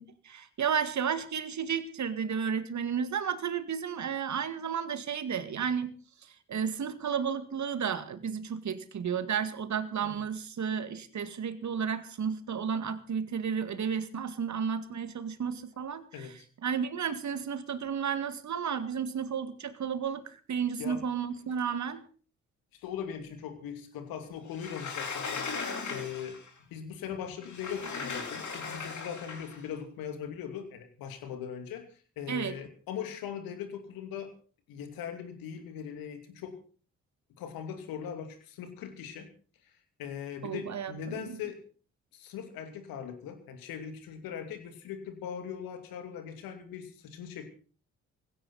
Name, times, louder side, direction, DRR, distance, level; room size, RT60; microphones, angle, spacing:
voice 1, 0.0-5.9 6.5-16.3 16.6-22.0 32.3-32.6 40.4-41.4, right 7 dB, 50° right, 11 dB, 2.0 m, -32 dB
voice 2, 16.1-16.5 20.8-21.0 22.7-25.5 25.9-26.4 26.7-31.9 32.2-34.3 34.7-36.6 37.4-39.3 40.0-41.6 42.1-47.5, left 8 dB, 75° left, 8 dB, 2.6 m, -40 dB
Sliding door, 24.5-26.5 27.4-29.6, left 5 dB, 55° left, 3.9 m, -38 dB
18.5 x 16.5 x 4.1 m, 0.40 s
hypercardioid pair, 40°, 36 cm